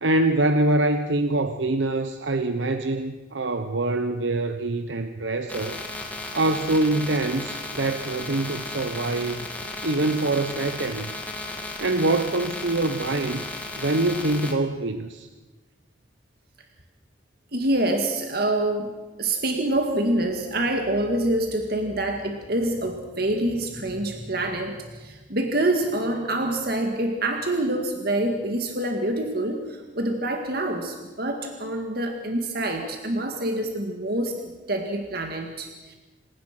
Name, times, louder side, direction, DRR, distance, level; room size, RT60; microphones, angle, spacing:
voice 1, 0.0-5.8 6.3-9.5 9.8-11.1 11.8-13.4 13.8-15.3, right 2 dB, 75° right, 8 dB, 1.0 m, -24 dB
sound 1, 5.5-14.5, left 2 dB, 10° left, 2.5 m, -35 dB
voice 2, 17.5-18.9 19.2-34.4 34.7-35.9, right 1 dB, 55° right, 4 dB, 2.0 m, -26 dB
27.0 x 17.0 x 6.0 m, 1.2 s
head